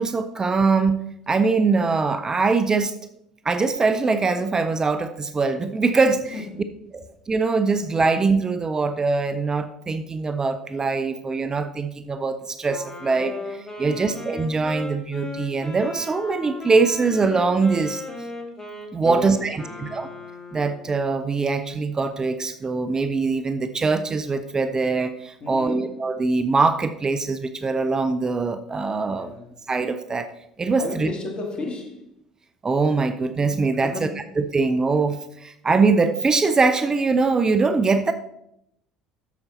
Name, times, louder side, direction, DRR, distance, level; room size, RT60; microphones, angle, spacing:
voice 1, 0.0-3.0 3.4-6.3 6.9-18.0 18.9-20.1 20.5-29.3 29.7-30.3 30.6-31.1 32.6-34.1 34.4-38.1, right 4 dB, 25° right, 0.6 m, -22 dB
voice 2, 6.3-6.8 13.8-14.3 19.0-20.3 25.4-26.0 29.1-29.6 30.8-32.2 33.8-34.3, left 2 dB, 40° left, 2.2 m, -35 dB
Wind instrument woodwind instrument, 12.6-20.9, left 2 dB, 20° left, 2.3 m, -36 dB
9.2 x 6.9 x 4.1 m
figure-of-eight pair, 60°, 3 cm